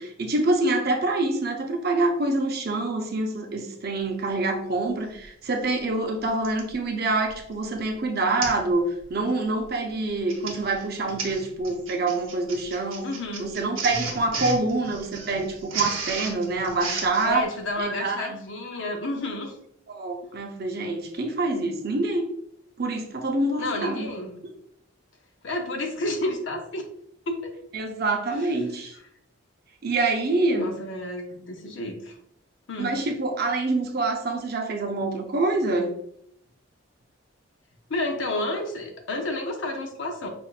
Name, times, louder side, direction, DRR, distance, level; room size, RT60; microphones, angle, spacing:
voice 1, 0.0-13.1 13.4-17.4 17.8-18.3 19.9-22.3 22.8-24.1 27.7-28.9 29.8-30.7 32.8-35.9, right 2 dB, 50° right, 3 dB, 0.6 m, -26 dB
Printer, 5.3-5.4 6.4-6.7 7.3-7.5 7.8-7.9 8.4-8.7 9.0-9.3 10.1-17.3, right 4 dB, 80° right, 0.9 m, -34 dB
voice 2, 13.0-13.5 17.2-19.5 23.6-24.4 25.4-26.8 27.3-27.5 28.3-28.5 30.6-32.2 32.7-33.0 37.9-40.3, left 2 dB, 65° left, 3 dB, 0.7 m, -30 dB
5.6 x 2.5 x 2.4 m, 0.72 s
head